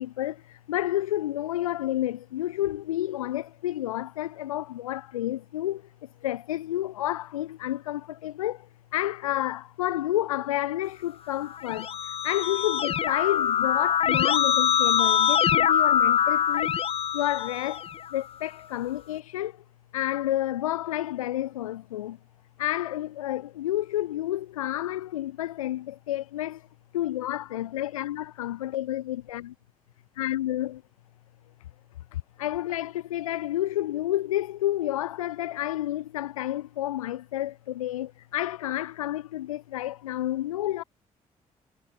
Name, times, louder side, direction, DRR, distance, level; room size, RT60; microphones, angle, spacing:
voice 1, 0.0-16.8 17.1-19.6 19.9-22.2 22.6-26.7 26.9-29.5 30.2-30.8 32.1-40.8, left 14 dB, 75° left, 1.9 m, -30 dB
Keyboard (musical), 11.5-18.1, left 9 dB, 35° left, 0.4 m, -24 dB
figure-of-eight pair, 40°, 18 cm